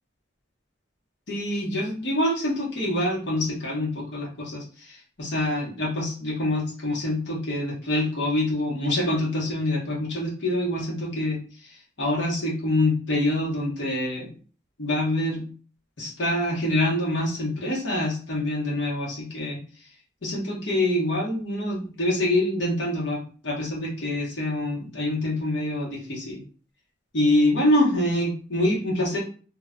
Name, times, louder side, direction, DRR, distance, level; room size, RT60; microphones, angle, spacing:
voice 1, 1.3-14.3 14.8-15.5 16.0-19.6 20.2-26.4 27.1-29.2, left 1 dB, 70° left, -3 dB, 0.9 m, -26 dB
2.2 x 2.1 x 3.6 m, 0.40 s
head